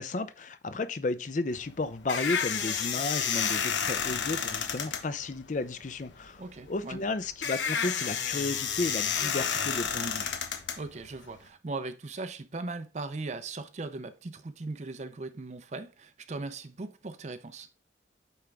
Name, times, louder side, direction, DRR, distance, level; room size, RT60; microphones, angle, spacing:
voice 1, 0.0-6.4 6.7-10.4, left 3 dB, 40° left, 0.5 m, -33 dB
sound 1, 1.5-11.5, left 7 dB, 75° left, 1.0 m, -31 dB
voice 2, 6.4-7.0 10.8-17.7, right 3 dB, 35° right, 0.4 m, -39 dB
8.7 x 3.5 x 3.3 m
head